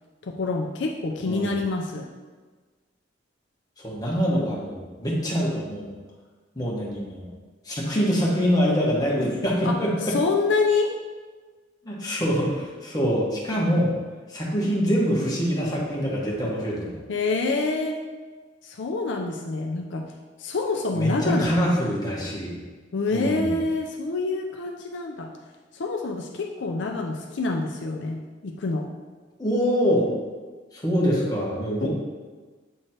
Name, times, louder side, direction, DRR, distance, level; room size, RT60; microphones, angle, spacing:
voice 1, 0.2-2.1 9.6-10.9 17.1-18.0 18.6-20.1 20.4-21.7 22.9-25.3 25.7-28.9 31.8-31.9, left 3 dB, 70° left, 2 dB, 0.5 m, -27 dB
voice 2, 3.8-5.9 6.5-7.3 7.7-9.9 11.8-13.9 14.3-17.0 20.9-22.6 23.1-23.5 29.4-30.1 30.7-31.9, equal, 20° left, -5 dB, 1.3 m, -24 dB
7.7 x 3.2 x 4.3 m, 1.4 s
head